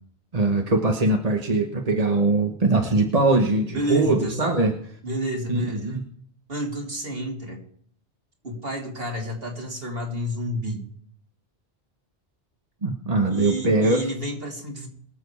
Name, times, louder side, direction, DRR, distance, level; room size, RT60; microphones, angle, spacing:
voice 1, 0.3-4.7 5.5-6.0 12.8-14.0, right 2 dB, 35° right, 3 dB, 1.4 m, -22 dB
voice 2, 3.7-4.7 5.0-6.0 6.5-7.6 8.4-10.8 13.2-14.9, equal, 60° right, 0 dB, 3.3 m, -30 dB
23.5 x 7.8 x 4.8 m, 0.63 s
omnidirectional pair, 1.1 m